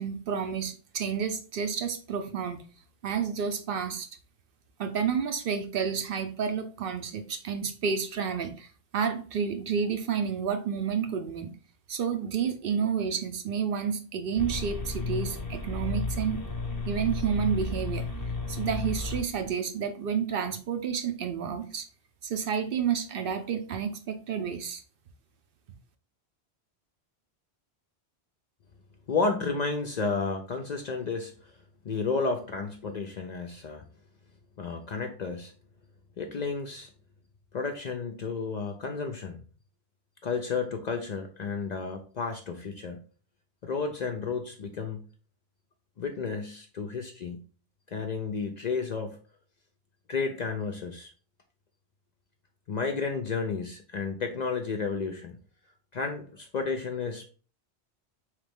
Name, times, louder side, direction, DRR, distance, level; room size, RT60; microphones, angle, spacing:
voice 1, 0.0-2.6 3.0-4.1 4.8-11.5 11.9-16.4 16.9-18.1 18.5-21.9 22.2-24.8, right 7 dB, 65° right, 8 dB, 0.7 m, -30 dB
sound 1, 14.4-19.5, left 3 dB, 20° left, 0.7 m, -33 dB
voice 2, 29.1-31.6 31.8-33.8 34.6-35.5 36.2-36.9 37.5-39.4 40.2-43.0 43.6-45.1 46.0-47.4 47.9-49.2 50.1-51.1 52.7-55.4 55.9-57.2, left 4 dB, 55° left, 4 dB, 0.5 m, -32 dB
4.0 x 3.2 x 3.4 m, 0.39 s
omnidirectional pair, 1.1 m